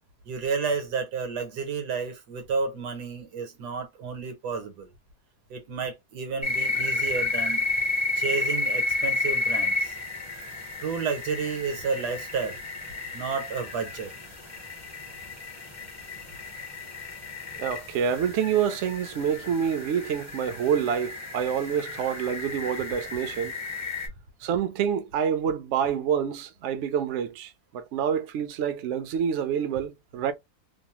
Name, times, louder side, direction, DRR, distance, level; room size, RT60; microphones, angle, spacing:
voice 1, 0.2-4.9 5.5-7.6 8.2-9.9 10.8-12.6 13.1-14.1, right 5 dB, 85° right, 1.4 m, -31 dB
sound 1, 6.4-24.1, left 2 dB, 20° left, 0.5 m, -32 dB
voice 2, 17.6-23.5 24.4-30.3, right 8 dB, 65° right, 0.7 m, -27 dB
3.0 x 2.0 x 2.9 m
omnidirectional pair, 1.7 m